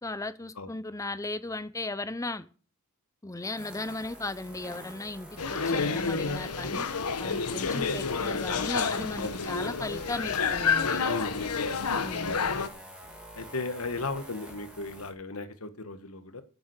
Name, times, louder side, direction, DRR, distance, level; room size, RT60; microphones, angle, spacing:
voice 1, 0.0-2.5 3.2-6.9 7.2-11.0 12.0-12.4, left 2 dB, 15° left, 0.6 m, -36 dB
sound 1, 3.5-15.1, equal, 5° right, 2.9 m, -47 dB
sound 2, 5.4-12.7, left 5 dB, 90° left, 1.2 m, -29 dB
voice 2, 7.4-7.8 9.1-9.4 11.1-11.9 12.2-12.6 13.3-16.4, left 3 dB, 70° left, 1.6 m, -36 dB
10.0 x 7.2 x 8.2 m
head